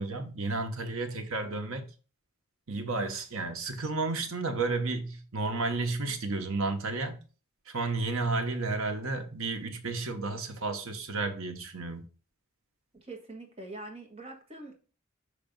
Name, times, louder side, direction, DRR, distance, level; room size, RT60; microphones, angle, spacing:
voice 1, 0.0-1.8 2.7-7.2 7.7-12.0, right 3 dB, 70° right, 1.1 m, -32 dB
voice 2, 12.9-14.8, right 2 dB, 30° right, 1.5 m, -44 dB
5.8 x 3.3 x 5.2 m
head